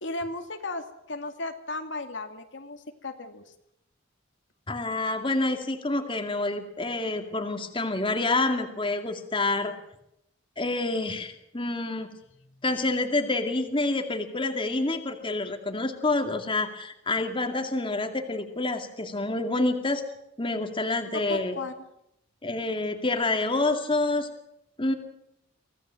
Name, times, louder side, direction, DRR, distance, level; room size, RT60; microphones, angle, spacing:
voice 1, 0.0-3.4 12.4-12.6 21.3-21.7, left 2 dB, 70° left, 6 dB, 2.2 m, -35 dB
voice 2, 4.7-9.8 10.6-12.1 12.6-20.0 20.4-21.6 22.4-24.3 24.8-24.9, left 2 dB, 25° left, 5 dB, 2.3 m, -28 dB
24.5 x 17.0 x 7.6 m, 0.80 s
head